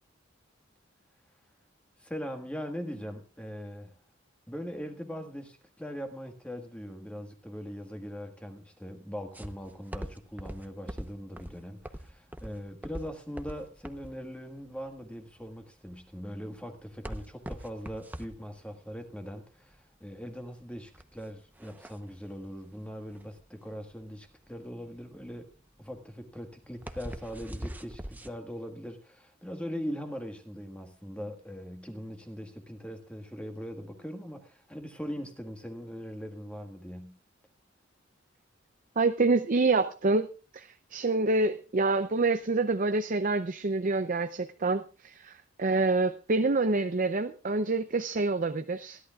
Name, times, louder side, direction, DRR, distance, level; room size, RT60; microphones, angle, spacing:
voice 1, 2.0-3.9 4.5-25.5 25.8-37.2, equal, 5° left, 5 dB, 1.5 m, -41 dB
sound 1, 9.3-28.3, equal, 10° right, 0.8 m, -43 dB
voice 2, 39.0-40.3 40.5-45.3 45.6-49.0, right 3 dB, 45° right, 9 dB, 0.6 m, -27 dB
29.0 x 11.5 x 2.4 m, 0.34 s
head